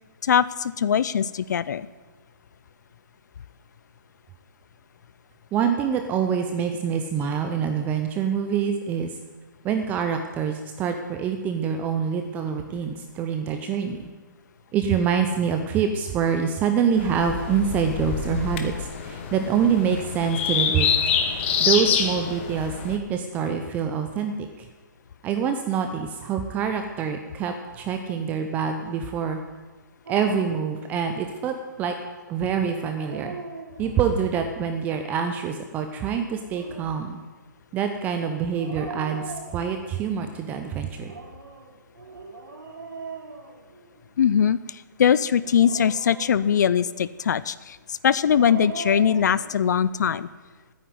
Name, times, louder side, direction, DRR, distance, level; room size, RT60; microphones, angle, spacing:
voice 1, 0.2-1.9 44.2-50.3, left 8 dB, 60° left, 17 dB, 0.5 m, -21 dB
voice 2, 5.5-9.1 9.6-14.0 14.7-20.9 21.6-24.7 25.2-29.4 30.1-32.0 32.3-33.3 33.8-37.2 37.7-41.1, right 7 dB, 15° right, 6 dB, 0.7 m, -26 dB
sound 1, 16.9-23.0, left 7 dB, 35° left, 1.4 m, -26 dB
Dog, 30.0-30.7 32.8-34.1 36.2-37.0 38.5-40.0 40.9-44.1 45.4-46.8 48.1-49.4, right 3 dB, 85° right, 3.2 m, -39 dB
9.9 x 9.5 x 9.5 m, 1.3 s
hypercardioid pair, 155°, 11 cm